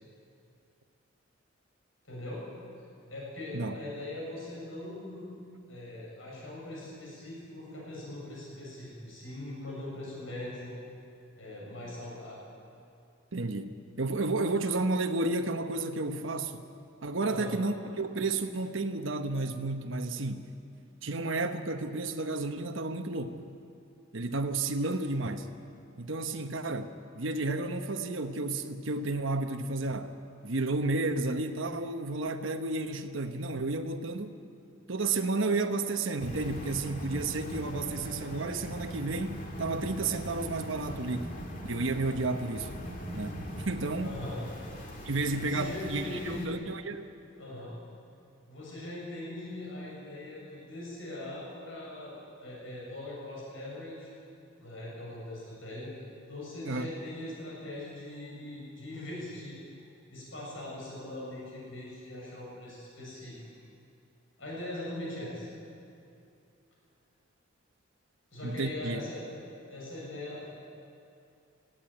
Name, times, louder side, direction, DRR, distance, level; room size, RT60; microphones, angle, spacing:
voice 1, 2.0-2.5 3.1-5.3 5.6-10.7 11.3-12.4 17.2-17.5 44.0-44.4 45.3-46.5 47.4-47.7 48.5-54.1 54.6-55.9 56.3-59.6 60.1-63.4 64.4-65.5 68.3-70.5, left 1 dB, 75° left, -5 dB, 7.3 m, -41 dB
voice 2, 13.3-13.7 14.0-16.6 17.0-20.5 21.0-23.4 24.1-25.5 26.0-30.1 30.4-34.4 34.9-41.3 41.6-42.7 43.1-44.2 45.0-47.1 56.7-56.9 68.4-69.0, right 2 dB, 70° right, 6 dB, 1.1 m, -32 dB
sound 1, 36.2-46.5, equal, 40° left, 2.5 m, -41 dB
19.5 x 15.0 x 9.2 m, 2.6 s
head